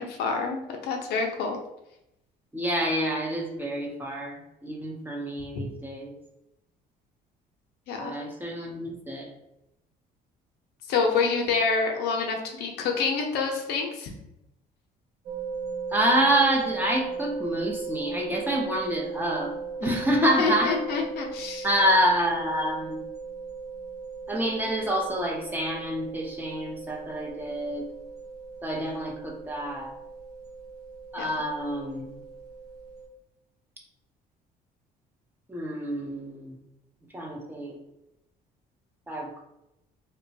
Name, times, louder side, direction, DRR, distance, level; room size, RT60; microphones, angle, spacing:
voice 1, 0.0-1.6 5.5-5.6 7.9-8.2 10.9-14.1 19.8-19.9 20.2-21.7 31.2-31.3, left 5 dB, 75° left, 2 dB, 0.6 m, -27 dB
voice 2, 2.5-6.1 8.0-9.3 15.9-19.5 19.8-20.7 21.6-23.0 24.3-27.9 28.6-29.9 31.1-32.0 35.5-36.6 37.1-37.8 39.1-39.4, right 1 dB, 10° right, -1 dB, 0.6 m, -27 dB
sound 1, 15.3-33.1, right 5 dB, 70° right, 0.5 m, -38 dB
2.9 x 2.2 x 2.7 m, 0.85 s
cardioid pair, 110°, 17 cm